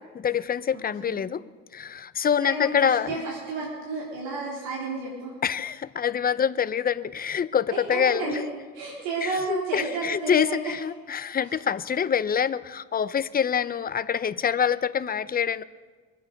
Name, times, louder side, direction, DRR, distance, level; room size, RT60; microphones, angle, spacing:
voice 1, 0.0-1.4 1.7-3.2 5.4-8.4 9.2-15.6, left 8 dB, 30° left, 15 dB, 0.6 m, -26 dB
voice 2, 2.4-5.3 7.7-8.4 8.7-10.7, right 3 dB, 90° right, -4 dB, 3.5 m, -31 dB
23.0 x 8.6 x 5.2 m, 1.4 s
supercardioid pair, 85°, 32 cm